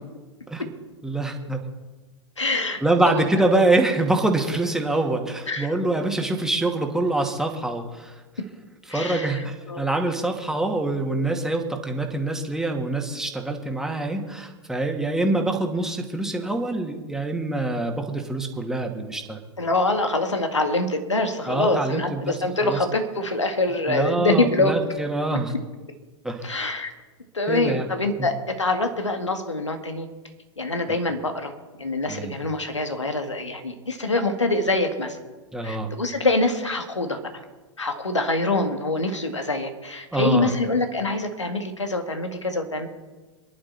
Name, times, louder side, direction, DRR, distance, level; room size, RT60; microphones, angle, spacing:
voice 1, 1.0-1.6 2.8-8.2 8.9-19.4 21.5-22.8 23.9-25.5 26.2-26.5 27.5-27.9 32.1-32.3 35.5-35.9 40.1-40.5, right 2 dB, 5° right, 2 dB, 2.2 m, -25 dB
voice 2, 2.4-2.8 3.1-3.7 5.5-5.8 8.9-9.8 19.6-24.8 26.4-26.9 27.3-30.1 30.6-31.5 31.8-35.2 35.6-37.2 37.8-42.9, left 2 dB, 85° left, 6 dB, 2.2 m, -25 dB
26.5 x 11.5 x 4.3 m, 1.2 s
figure-of-eight pair, 100°, 15 cm